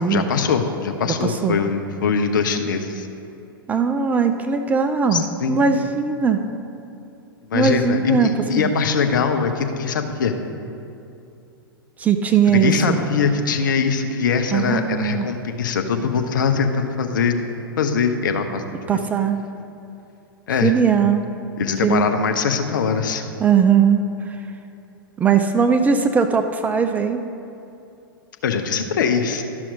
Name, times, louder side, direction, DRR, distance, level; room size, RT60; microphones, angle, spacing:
voice 1, 0.0-3.1 5.1-5.8 7.5-10.3 12.5-17.4 17.8-18.6 20.5-20.7 21.6-23.3 28.4-29.4, left 6 dB, 60° left, 6 dB, 0.7 m, -22 dB
voice 2, 1.2-1.6 3.7-6.4 7.5-8.3 8.6-8.7 12.0-13.0 14.5-15.3 18.9-19.4 20.6-21.3 21.8-22.1 23.4-24.4 25.2-27.2, right 6 dB, 15° right, 6 dB, 0.3 m, -19 dB
12.0 x 6.0 x 4.0 m, 2.7 s
figure-of-eight pair, 100°, 12 cm